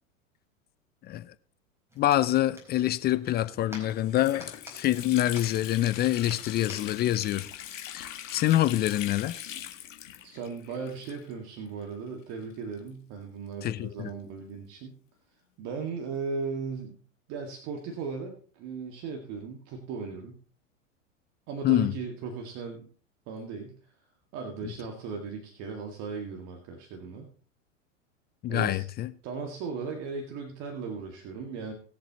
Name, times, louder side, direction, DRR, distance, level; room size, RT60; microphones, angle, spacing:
voice 1, 1.0-1.3 2.0-7.5 7.9-9.4 13.6-14.1 21.6-21.9 28.4-29.1, left 14 dB, 25° left, 0.5 m, -26 dB
sound 1, 1.9-7.4, left 1 dB, 5° right, 4.5 m, -50 dB
Water tap faucet, 3.3-3.4 3.8-11.5 11.8-11.9 12.7-14.3, left 10 dB, 75° left, 1.9 m, -42 dB
voice 2, 10.2-15.0 15.6-17.0 17.3-20.4 21.5-22.9 23.3-23.8 24.3-27.3 28.5-28.8 29.2-31.7, right 5 dB, 45° right, 2.1 m, -37 dB
20.5 x 7.5 x 3.0 m
hypercardioid pair, 100°, 39 cm